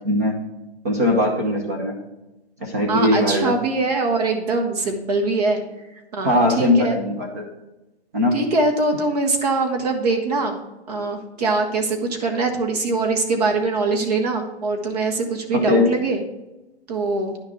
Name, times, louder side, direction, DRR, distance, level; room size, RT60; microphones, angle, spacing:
voice 1, 0.8-1.9 2.6-3.5 6.2-7.4 8.1-8.3 15.5-15.9, left 1 dB, 15° right, -1 dB, 0.5 m, -20 dB
voice 2, 2.9-5.6 6.1-7.0 8.3-10.6 10.9-16.2 16.9-17.4, right 3 dB, 35° right, 4 dB, 1.1 m, -22 dB
10.5 x 3.6 x 5.8 m, 1.0 s
hypercardioid pair, 160°, 33 cm